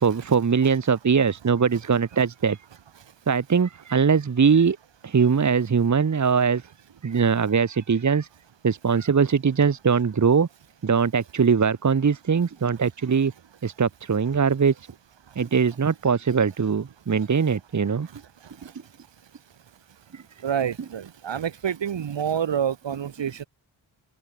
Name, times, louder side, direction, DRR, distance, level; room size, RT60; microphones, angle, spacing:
voice 1, 0.0-2.6 3.3-4.8 5.0-6.6 7.0-8.3 8.6-10.5 10.8-13.3 13.6-14.7 15.3-18.1 20.1-20.2, right 6 dB, 40° right, 1.5 m, -21 dB
voice 2, 20.4-23.4, right 8 dB, 70° right, 3.0 m, -27 dB
open air
cardioid pair, 80°, 45 cm